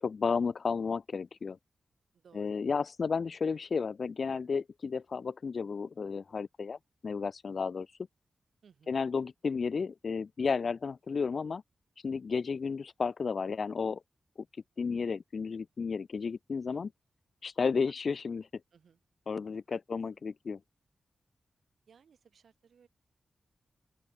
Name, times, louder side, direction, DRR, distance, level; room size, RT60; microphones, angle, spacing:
voice 1, 0.0-1.6 2.4-6.8 7.0-7.9 8.9-11.6 12.0-14.0 14.8-16.9 17.4-18.5 19.3-20.6, left 5 dB, 65° left, 0.5 m, -32 dB
voice 2, 2.1-2.6 8.6-9.0 18.3-18.4 18.7-19.0 19.7-19.8 20.1-20.2 21.9-22.9, right 6 dB, 80° right, 6.4 m, -62 dB
open air
cardioid pair, 55°, 0 cm